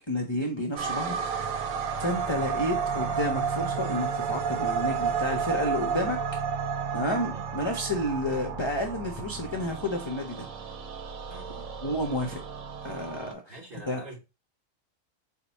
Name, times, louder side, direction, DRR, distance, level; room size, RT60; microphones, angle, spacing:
voice 1, 0.1-1.6 2.0-6.2 6.9-10.5 11.8-12.4 12.8-13.5 13.9-14.0, left 1 dB, 35° left, 0.4 m, -31 dB
sound 1, 0.8-13.3, right 6 dB, 85° right, 1.1 m, -32 dB
voice 2, 11.3-11.7 13.5-14.2, right 2 dB, 45° right, 1.4 m, -45 dB
4.6 x 2.2 x 4.0 m
omnidirectional pair, 1.4 m